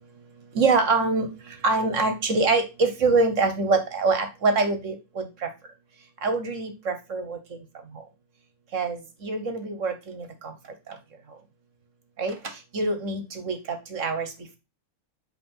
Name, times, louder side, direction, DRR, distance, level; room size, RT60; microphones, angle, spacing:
voice 1, 0.5-1.3 1.6-5.5 6.2-7.4 8.7-10.3 12.2-12.4 12.7-13.6 13.9-14.3, right 3 dB, 45° right, 7 dB, 1.2 m, -24 dB
8.5 x 3.5 x 5.4 m, 0.27 s
omnidirectional pair, 2.4 m